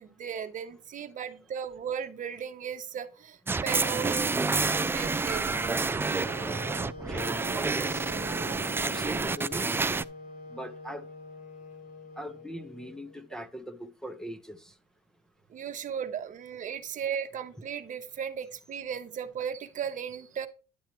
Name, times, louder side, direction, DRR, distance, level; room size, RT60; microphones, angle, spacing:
voice 1, 0.0-5.6 7.5-7.7 8.4-8.8 15.5-20.5, right 8 dB, 50° right, 1.0 m, -36 dB
sound 1, 3.5-10.0, right 4 dB, 15° right, 0.3 m, -29 dB
Wind instrument woodwind instrument, 5.3-13.3, left 2 dB, 65° left, 3.7 m, -45 dB
voice 2, 7.1-7.4 7.7-8.1 8.8-9.8 10.5-11.0 12.2-14.7, equal, 5° left, 0.8 m, -41 dB
10.0 x 7.1 x 3.1 m
cardioid pair, 110°, 17 cm